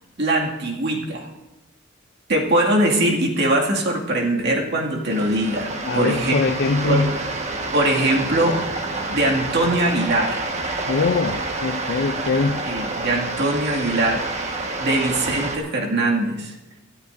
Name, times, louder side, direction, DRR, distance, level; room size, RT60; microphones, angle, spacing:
voice 1, 0.2-1.3 2.3-6.5 6.9-7.1 7.7-8.6 9.1-10.5 12.7-14.3 14.8-16.5, right 1 dB, 60° right, 2.3 m, -21 dB
sound 1, 5.1-15.6, right 2 dB, 35° right, 1.5 m, -28 dB
voice 2, 5.9-7.2 10.9-12.7, left 4 dB, 60° left, 0.5 m, -22 dB
22.5 x 13.0 x 2.7 m
head